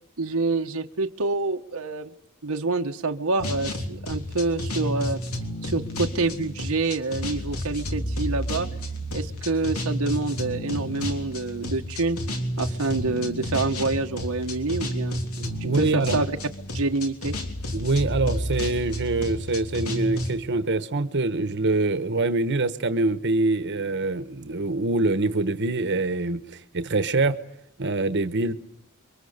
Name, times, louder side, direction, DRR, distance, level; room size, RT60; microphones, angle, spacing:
voice 1, 0.2-2.1 2.4-5.2 5.6-8.7 9.1-12.2 12.6-15.2 15.6-16.3 16.7-17.4, right 3 dB, 80° right, 4 dB, 1.2 m, -27 dB
sound 1, 3.4-20.3, equal, 90° left, 3.3 m, -31 dB
voice 2, 15.4-16.2 17.7-27.4 27.8-28.5, right 2 dB, 55° right, 10 dB, 1.2 m, -25 dB
29.0 x 23.5 x 6.7 m, 0.74 s
head